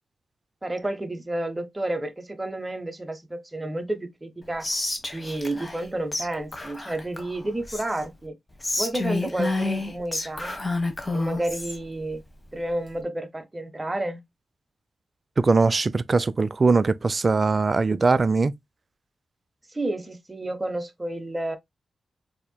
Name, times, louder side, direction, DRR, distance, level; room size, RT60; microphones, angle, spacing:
voice 1, 0.6-4.7 5.1-8.4 8.7-10.6 11.1-12.2 12.5-14.2 19.7-21.6, right 1 dB, 20° right, 0.8 m, -30 dB
Whispering, 4.6-5.9 6.1-6.3 6.5-8.1 8.6-11.8, left 2 dB, 25° left, 1.0 m, -29 dB
voice 2, 15.4-18.5, right 4 dB, 40° right, 0.3 m, -21 dB
4.3 x 2.8 x 2.3 m
cardioid pair, 85°, 0 cm